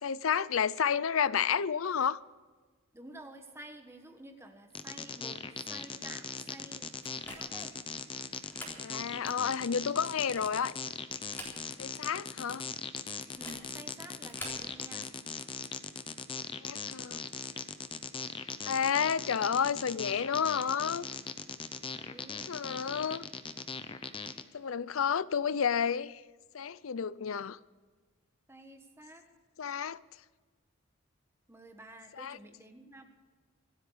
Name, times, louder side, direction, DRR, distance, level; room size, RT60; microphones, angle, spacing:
voice 1, 0.0-2.2 8.8-10.7 11.8-12.6 16.6-17.2 18.6-21.1 22.5-23.2 24.5-26.2 26.5-27.6 29.6-30.0 32.2-32.4, left 7 dB, 80° left, 0.5 m, -31 dB
voice 2, 2.9-6.9 7.3-7.8 13.4-15.1 22.0-22.5 28.5-29.2 31.5-33.0, right 1 dB, 10° right, 1.4 m, -50 dB
sound 1, 4.7-24.4, left 5 dB, 25° left, 0.7 m, -40 dB
sound 2, 7.0-7.7 8.3-8.8 9.3-9.4 10.0-10.7 11.2-12.0 12.2-12.3 13.3-13.7 14.2-14.7, left 1 dB, 10° left, 3.7 m, -46 dB
25.0 x 9.0 x 5.0 m
head